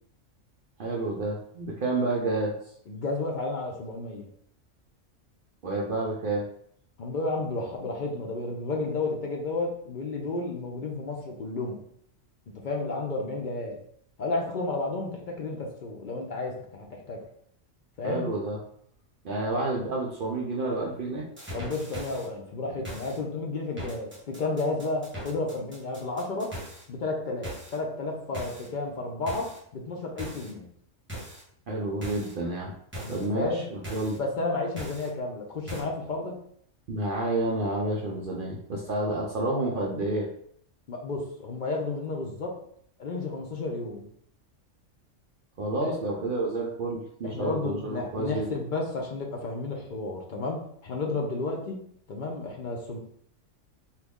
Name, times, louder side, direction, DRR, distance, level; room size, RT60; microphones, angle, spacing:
voice 1, 0.8-2.5 5.6-6.4 18.0-18.6 19.2-21.3 31.7-32.7 33.1-34.2 36.9-40.3 45.6-48.5, right 2 dB, 60° right, -3 dB, 0.6 m, -29 dB
voice 2, 2.9-4.3 7.0-11.8 12.6-13.8 14.2-17.2 18.0-18.3 19.5-19.6 21.5-26.5 26.9-30.7 33.0-33.6 34.2-36.4 40.9-42.6 43.0-44.1 45.8-46.0 47.2-51.8 52.1-53.0, left 3 dB, 55° left, 0 dB, 0.6 m, -32 dB
sound 1, 21.4-22.3 22.8-23.2 23.8-26.8 27.4-27.8 28.3-28.7 29.3-29.6 30.2-30.5 31.1-31.4 32.0-32.3 32.9-33.3 33.8-34.2 34.8-35.1 35.7-35.8, equal, 10° right, 0.8 m, -39 dB
3.0 x 2.3 x 3.5 m, 0.65 s
omnidirectional pair, 1.3 m